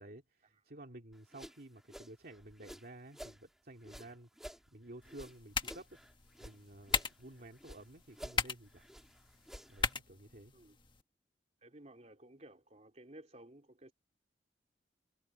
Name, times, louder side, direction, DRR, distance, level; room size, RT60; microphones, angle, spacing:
voice 1, 0.0-6.0 6.4-8.9 9.7-10.5, right 1 dB, 55° right, 2.6 m, -53 dB
sound 1, 1.1-3.4 3.8-6.6 6.8-7.8 8.1-9.9, equal, ahead, 2.3 m, -52 dB
sound 2, 5.0-11.0, left 5 dB, 30° left, 1.5 m, -40 dB
voice 2, 11.6-13.9, right 1 dB, 40° right, 3.7 m, -55 dB
head